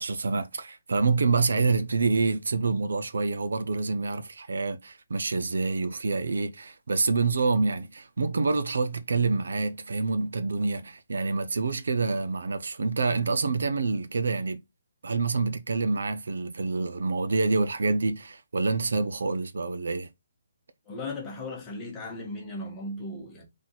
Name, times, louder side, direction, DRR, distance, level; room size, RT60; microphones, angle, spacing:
voice 1, 0.0-14.6 15.0-20.1, right 3 dB, 75° right, 0.7 m, -27 dB
voice 2, 20.9-23.4, left 2 dB, 10° left, 1.1 m, -37 dB
4.2 x 3.0 x 4.0 m
hypercardioid pair, 175°, 0 cm